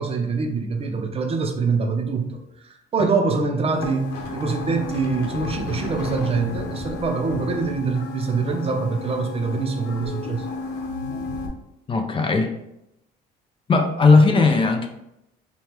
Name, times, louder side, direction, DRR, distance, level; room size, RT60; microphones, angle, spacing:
voice 1, 0.0-10.5 14.3-14.5, right 4 dB, 35° right, 4 dB, 0.6 m, -24 dB
sound 1, 3.8-11.5, left 3 dB, 85° left, 0.9 m, -33 dB
voice 2, 11.9-12.5 13.7-14.9, left 4 dB, 30° left, 4 dB, 0.5 m, -17 dB
5.1 x 2.3 x 3.0 m, 0.83 s
cardioid pair, 110°, 17 cm